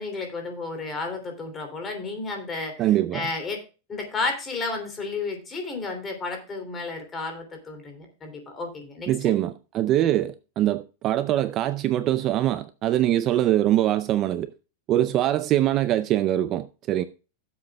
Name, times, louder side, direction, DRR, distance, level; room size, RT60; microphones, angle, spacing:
voice 1, 0.0-3.6 3.9-9.1, left 3 dB, 15° left, 3.0 m, -32 dB
voice 2, 2.8-3.3 9.1-14.5 14.9-17.0, right 13 dB, 30° right, 0.5 m, -23 dB
16.5 x 7.8 x 2.3 m
supercardioid pair, 155°, 0 cm